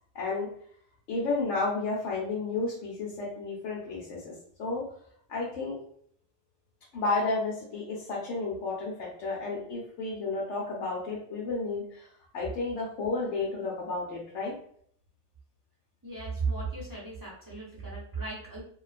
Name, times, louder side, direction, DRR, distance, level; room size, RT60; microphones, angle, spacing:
voice 1, 0.1-0.5 1.1-4.3 4.6-4.8 5.3-5.8 6.9-12.1 12.3-14.5, left 3 dB, 85° left, -4 dB, 1.0 m, -32 dB
voice 2, 16.0-18.6, right 4 dB, 25° right, -6 dB, 0.5 m, -35 dB
2.3 x 2.2 x 2.4 m, 0.62 s
omnidirectional pair, 1.2 m